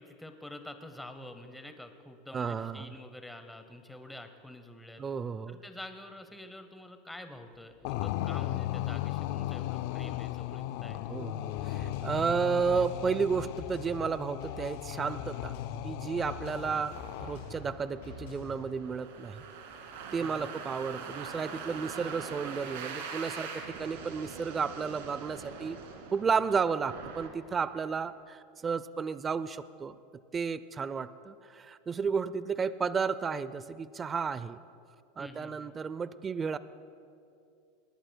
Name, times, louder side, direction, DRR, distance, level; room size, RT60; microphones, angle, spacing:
voice 1, 0.0-5.0 5.5-11.0 16.7-16.9 20.2-20.5 35.2-35.7, left 1 dB, 5° left, 7 dB, 0.8 m, -47 dB
voice 2, 2.3-2.9 5.0-5.6 11.1-15.5 15.8-16.9 17.2-19.4 20.1-23.5 23.8-25.8 26.1-30.0 30.3-34.6 35.2-36.6, right 5 dB, 20° right, 16 dB, 0.4 m, -32 dB
sound 1, 7.8-17.7, left 14 dB, 60° left, 0.3 m, -36 dB
sound 2, 11.5-18.7, left 4 dB, 80° left, 3.4 m, -46 dB
sound 3, 16.8-28.0, right 5 dB, 85° right, 1.9 m, -43 dB
20.0 x 19.0 x 2.2 m, 2.5 s
supercardioid pair, 145°, 0 cm